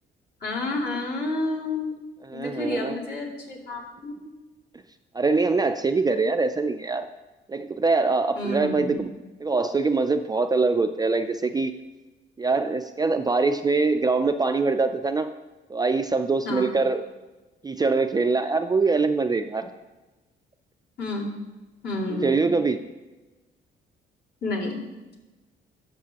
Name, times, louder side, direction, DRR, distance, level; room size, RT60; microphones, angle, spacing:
voice 1, 0.4-2.0 2.3-4.3 8.4-9.0 16.4-16.7 21.0-21.3 21.8-22.5 24.4-24.8, left 2 dB, 55° left, -3 dB, 2.5 m, -30 dB
voice 2, 2.2-3.0 5.1-7.1 7.5-9.1 9.4-11.7 12.4-15.3 15.7-17.0 17.6-19.7 22.1-22.8, right 3 dB, 20° right, 7 dB, 0.4 m, -23 dB
12.0 x 6.7 x 2.9 m, 1.1 s
cardioid pair, 90°, 20 cm